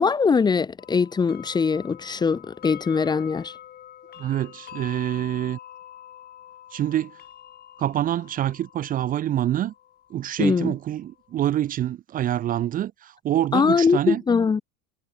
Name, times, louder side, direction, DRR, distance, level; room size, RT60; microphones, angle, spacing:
voice 1, 0.0-3.5 10.4-10.7 13.5-14.6, left 5 dB, 15° left, 1.1 m, -22 dB
sound 1, 0.8-11.3, left 11 dB, 30° left, 7.8 m, -45 dB
voice 2, 4.2-5.6 6.7-7.1 7.8-9.7 10.1-14.2, right 12 dB, 30° right, 0.8 m, -26 dB
cardioid pair, 155°, 29 cm